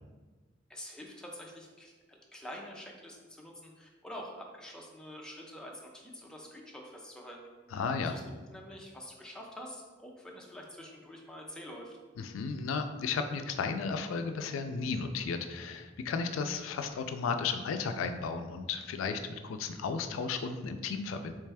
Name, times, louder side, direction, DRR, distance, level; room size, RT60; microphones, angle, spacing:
voice 1, 0.7-7.4 8.0-8.2 8.5-12.0, equal, 5° left, -1 dB, 0.5 m, -46 dB
voice 2, 7.7-8.1 12.2-21.3, left 5 dB, 85° left, 8 dB, 0.3 m, -34 dB
3.3 x 3.2 x 3.4 m, 1.3 s
head